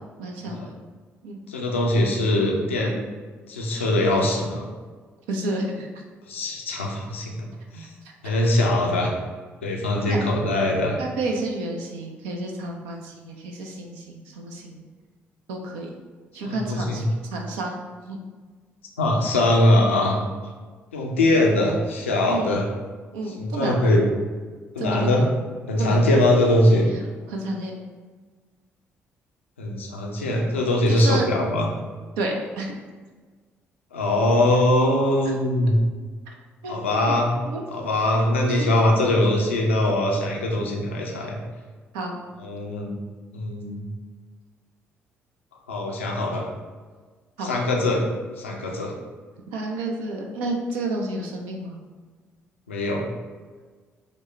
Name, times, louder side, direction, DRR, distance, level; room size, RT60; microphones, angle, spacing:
voice 1, 0.2-0.6 1.2-1.4 5.3-5.9 10.1-10.2 11.0-14.8 15.5-15.9 16.3-17.0 17.3-18.2 22.3-22.5 23.1-23.9 24.8-25.3 25.8-26.1 27.3-27.7 30.9-31.3 32.2-32.7 36.6-36.8 37.1-37.2 37.4-37.6 38.5-38.6 41.9-42.2 47.4-47.5 49.5-51.8, right 2 dB, 70° right, 1 dB, 0.4 m, -30 dB
voice 2, 1.5-2.9 3.5-4.7 6.3-7.5 7.7-7.9 8.2-9.1 9.6-11.0 16.4-17.1 19.0-20.2 20.9-22.6 23.4-24.0 24.7-25.2 25.7-26.8 29.6-31.7 33.9-35.8 36.7-37.3 37.7-41.4 42.4-42.9 43.3-43.9 45.7-46.4 47.4-48.0 48.4-48.9 52.7-53.0, left 1 dB, 85° left, -1 dB, 0.4 m, -22 dB
5.1 x 2.0 x 3.1 m, 1.4 s
figure-of-eight pair, 45°, 7 cm